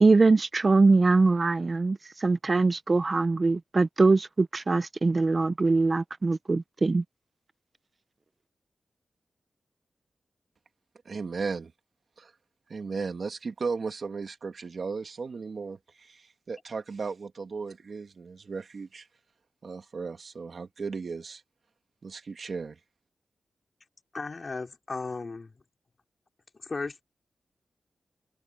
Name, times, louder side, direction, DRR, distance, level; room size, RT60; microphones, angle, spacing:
voice 1, 0.0-7.0, right 3 dB, 35° right, 0.5 m, -22 dB
voice 2, 11.1-11.7 12.2-12.3 12.7-19.1 19.6-21.4 22.0-22.8, right 4 dB, 55° right, 1.9 m, -36 dB
voice 3, 24.1-25.5 26.6-27.0, left 3 dB, 40° left, 4.0 m, -35 dB
wide cardioid pair, 130°, 0 cm